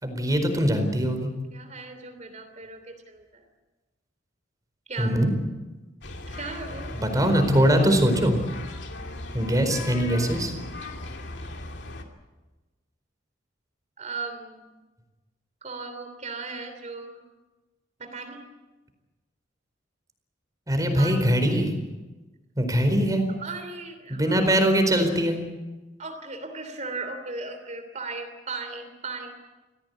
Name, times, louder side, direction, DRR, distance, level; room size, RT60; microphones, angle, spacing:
voice 1, 0.0-1.3 5.0-5.3 6.9-8.4 9.3-10.5 20.7-21.7 22.6-23.2 24.1-25.4, equal, 20° right, 6 dB, 4.5 m, -22 dB
voice 2, 1.5-3.4 4.9-5.2 6.3-7.0 14.0-14.7 15.6-17.1 18.0-18.5 21.0-21.2 23.4-24.6 26.0-29.3, right 3 dB, 40° right, 7 dB, 3.1 m, -37 dB
sound 1, 6.0-12.0, left 2 dB, 70° left, 2.6 m, -38 dB
26.0 x 17.0 x 8.3 m, 1.2 s
head